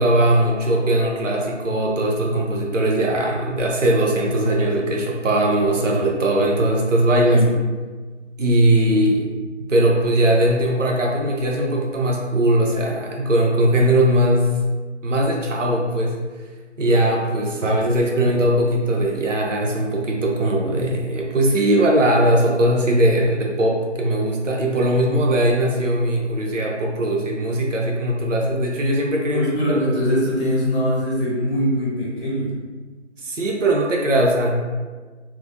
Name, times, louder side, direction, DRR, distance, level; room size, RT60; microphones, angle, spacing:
voice 1, 0.0-7.4 8.4-9.3 9.7-14.5 15.0-16.2 16.8-29.8 33.2-34.5, right 1 dB, 80° right, -1 dB, 0.5 m, -19 dB
voice 2, 29.3-32.5, equal, 45° left, -7 dB, 0.6 m, -22 dB
2.3 x 2.1 x 2.5 m, 1.4 s
figure-of-eight pair, 175°, 37 cm